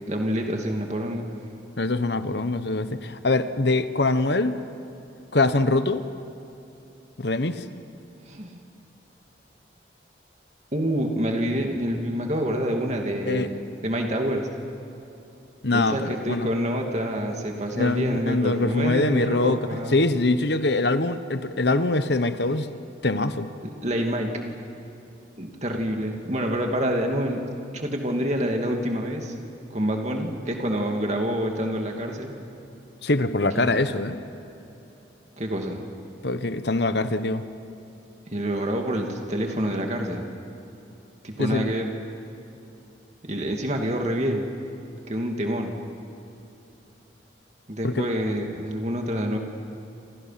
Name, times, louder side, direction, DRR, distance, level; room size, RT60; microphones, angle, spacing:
voice 1, 0.1-1.3 8.3-8.5 10.7-14.5 15.7-20.0 23.6-24.3 25.4-27.5 27.7-29.3 29.7-32.3 33.6-33.8 35.4-35.8 38.3-40.3 41.2-41.9 43.2-44.5 45.1-45.8 47.7-49.4, equal, 35° right, 2 dB, 2.6 m, -27 dB
voice 2, 1.8-4.6 5.3-6.0 7.2-7.6 13.3-13.5 15.6-16.5 17.7-22.7 23.0-23.5 33.0-34.2 36.2-37.4 41.4-41.7 47.8-48.1, left 2 dB, 65° left, 11 dB, 1.2 m, -23 dB
28.5 x 27.0 x 6.0 m, 3.0 s
head